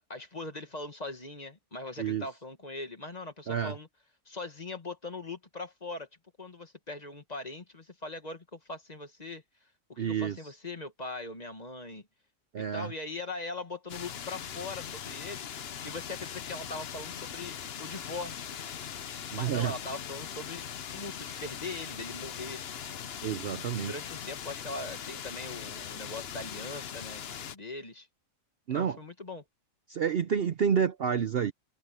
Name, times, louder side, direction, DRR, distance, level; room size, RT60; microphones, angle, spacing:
voice 1, 0.1-3.9 4.3-6.1 6.4-9.4 9.9-12.1 12.6-18.6 19.3-22.6 23.8-27.2 27.5-28.1 28.7-29.4, left 2 dB, 30° left, 1.9 m, -41 dB
voice 2, 10.0-10.4 12.5-12.9 19.3-19.7 23.2-23.9 28.7-29.0 29.9-31.5, right 8 dB, 55° right, 0.8 m, -29 dB
sound 1, 13.9-27.6, left 8 dB, 55° left, 1.0 m, -40 dB
omnidirectional pair, 1.4 m